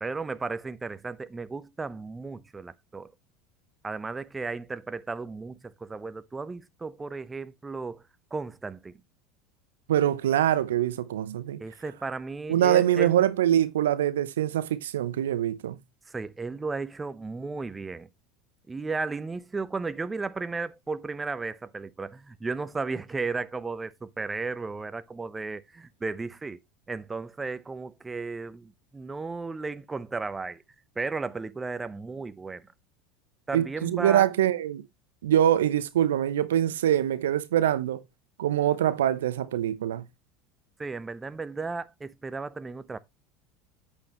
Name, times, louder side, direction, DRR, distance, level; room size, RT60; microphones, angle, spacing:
voice 1, 0.0-3.1 3.8-8.0 8.3-8.9 11.6-13.1 16.1-18.1 18.7-26.6 26.9-30.6 31.0-32.6 33.5-34.3 40.8-43.0, right 4 dB, 20° right, 0.7 m, -34 dB
voice 2, 9.9-11.6 12.5-15.8 33.5-34.8 35.2-38.0 38.4-40.0, right 11 dB, 75° right, 0.8 m, -24 dB
8.5 x 8.3 x 3.0 m
hypercardioid pair, 75°, 0 cm